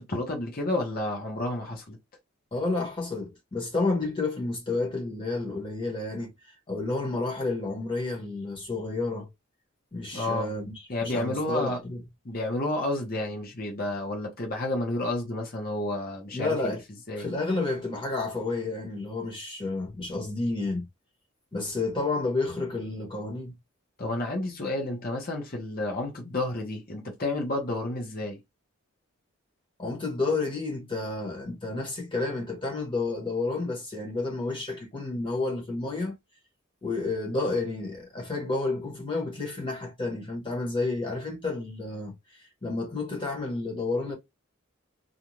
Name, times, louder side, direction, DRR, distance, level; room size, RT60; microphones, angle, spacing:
voice 1, 0.0-2.0 10.1-10.5 10.9-11.8 12.2-16.8 17.1-17.3 24.0-28.4, left 1 dB, 45° left, 0.9 m, -30 dB
voice 2, 2.5-9.3 9.9-12.0 16.3-16.8 17.2-20.9 21.5-23.5 29.8-36.2 36.8-44.1, left 3 dB, 25° left, 1.0 m, -30 dB
2.5 x 2.4 x 3.0 m
head